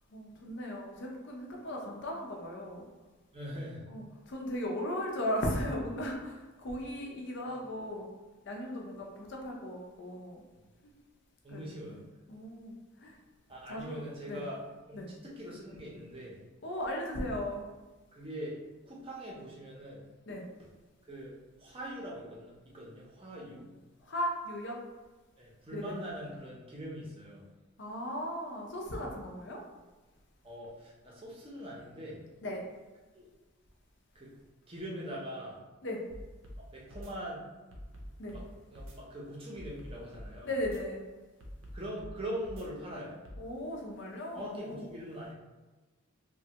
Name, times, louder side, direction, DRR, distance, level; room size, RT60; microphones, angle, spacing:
voice 1, 0.1-2.9 3.9-8.1 8.5-10.4 11.5-12.0 12.3-13.2 13.7-14.4 14.9-15.1 16.6-17.6 20.3-20.5 24.0-24.8 25.7-26.0 27.8-29.6 32.4-32.6 35.8-36.0 38.2-38.4 40.4-41.0 43.4-44.9, left 1 dB, 55° left, 0 dB, 0.6 m, -37 dB
voice 2, 3.3-3.8 7.4-7.5 11.4-12.0 13.5-14.6 14.9-16.4 18.1-18.5 18.8-20.0 21.1-23.7 25.4-27.5 30.4-32.2 33.1-33.3 34.1-34.3 34.7-35.6 36.6-37.4 38.3-38.4 38.7-40.5 41.7-43.2 44.3-45.3, equal, 25° right, -4 dB, 0.6 m, -42 dB
sound 1, 36.1-36.6 36.9-37.1 37.7-38.4 38.7-39.0 39.6-40.3 40.6-40.8 41.4-42.1 42.4-42.6 43.2-43.4, equal, 65° right, 0.6 m, -45 dB
3.1 x 2.2 x 2.8 m, 1.2 s
head